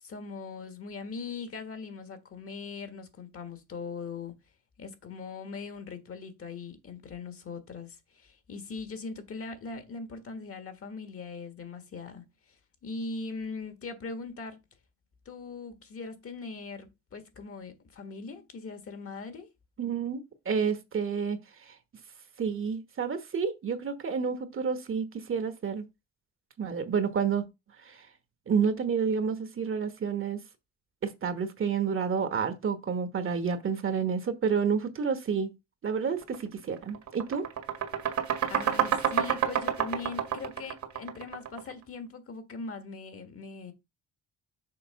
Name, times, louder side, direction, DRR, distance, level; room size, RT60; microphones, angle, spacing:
voice 1, 0.0-4.3 4.8-12.6 12.8-14.6 15.2-19.5 38.5-43.7, left 4 dB, 50° left, 1.5 m, -40 dB
voice 2, 19.8-21.8 22.4-25.8 26.6-27.5 27.8-28.1 28.5-30.4 31.0-35.5 35.8-37.5, right 6 dB, 45° right, 1.2 m, -29 dB
sound 1, 36.2-36.4 36.8-41.7, right 9 dB, 70° right, 1.8 m, -29 dB
6.7 x 3.2 x 5.7 m
cardioid pair, 90°, 30 cm